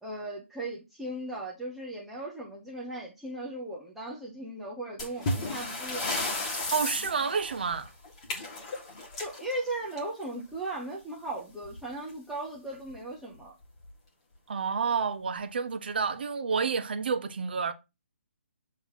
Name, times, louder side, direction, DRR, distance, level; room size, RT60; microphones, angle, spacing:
voice 1, 0.0-6.1 9.2-13.5, right 2 dB, ahead, 0.5 m, -37 dB
sound 1, 5.0-10.4 11.6-11.8 12.1-12.2 12.8-12.9 13.6-13.9, left 2 dB, 25° left, 1.7 m, -34 dB
voice 2, 6.7-7.9 14.5-17.7, right 5 dB, 45° right, 0.8 m, -29 dB
7.4 x 2.8 x 5.6 m
hypercardioid pair, 175°, 7 cm